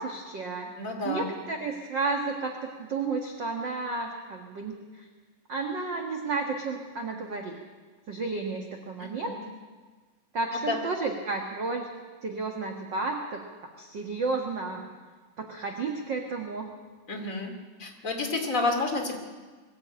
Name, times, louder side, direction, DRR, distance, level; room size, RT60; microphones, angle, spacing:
voice 1, 0.0-0.7 1.0-5.1 5.5-7.6 8.1-9.3 10.3-11.9 12.2-13.4 13.8-14.8 15.4-16.7, right 3 dB, 55° right, 2 dB, 1.3 m, -32 dB
voice 2, 0.8-1.3 9.0-9.4 10.5-10.8 17.1-17.5 17.8-19.2, left 3 dB, 25° left, 2 dB, 2.3 m, -30 dB
22.0 x 13.5 x 8.8 m, 1.4 s
omnidirectional pair, 4.3 m